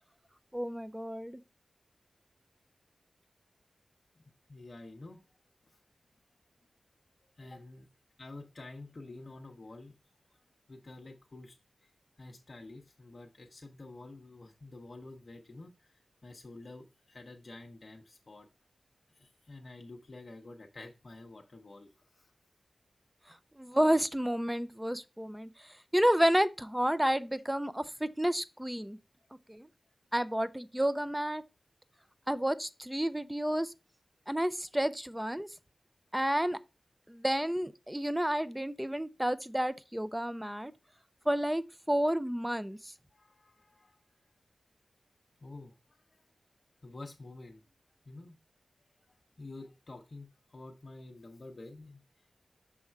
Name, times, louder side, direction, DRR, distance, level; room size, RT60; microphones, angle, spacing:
voice 1, 0.5-1.4 23.6-29.0 29.5-29.7 30.1-31.4 32.3-33.7 34.3-35.5 36.1-36.6 37.1-40.7 41.3-42.9, equal, 5° right, 0.4 m, -30 dB
voice 2, 4.5-5.2 5.6-5.8 7.4-7.9 8.2-9.9 10.3-11.9 12.2-18.5 19.1-22.3 27.3-27.4 43.1-44.0 45.4-46.3 46.8-47.6 48.0-48.4 49.1-52.3, left 2 dB, 40° left, 0.7 m, -49 dB
6.4 x 3.6 x 4.4 m
wide cardioid pair, 115°, 0 cm